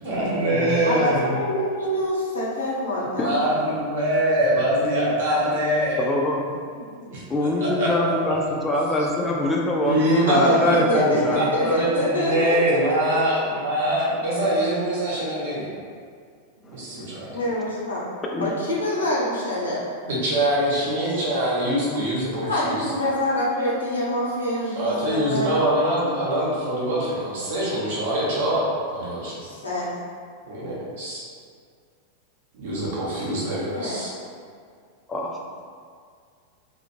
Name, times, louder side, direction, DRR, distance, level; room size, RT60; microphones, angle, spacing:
voice 1, 0.0-1.3 3.2-6.0 6.7-7.2 7.6-7.9 8.2-8.3 9.8-11.4 11.7-15.7 16.7-17.3 20.0-22.8 24.8-29.4 30.4-31.2 32.5-34.1, right 1 dB, 60° right, -7 dB, 0.8 m, -23 dB
voice 2, 0.8-3.3 10.3-11.2 11.5-13.5 17.3-18.1 18.4-19.8 22.5-25.9 29.4-29.9 33.7-34.0, left 1 dB, 75° left, -7 dB, 0.7 m, -26 dB
voice 3, 6.0-6.6 7.3-11.8 16.7-17.1 18.3-18.5 35.1-35.4, left 1 dB, 15° left, -1 dB, 0.4 m, -25 dB
2.2 x 2.0 x 3.0 m, 2.1 s
figure-of-eight pair, 90°, 0 cm